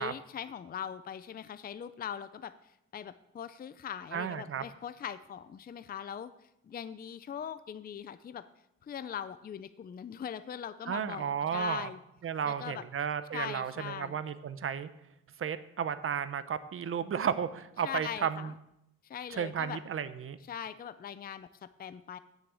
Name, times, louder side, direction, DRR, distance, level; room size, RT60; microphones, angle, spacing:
voice 1, 0.0-2.5 2.9-6.3 6.6-8.5 8.8-12.0 12.4-12.8 13.3-14.2 17.8-18.5 19.0-19.8 20.5-22.2, left 8 dB, 30° left, 13 dB, 0.5 m, -41 dB
voice 2, 4.1-4.6 10.9-11.9 12.2-14.9 15.4-18.5 19.3-20.4, right 8 dB, 45° right, 13 dB, 0.7 m, -33 dB
9.6 x 6.5 x 7.5 m, 0.80 s
cardioid pair, 90°, 30 cm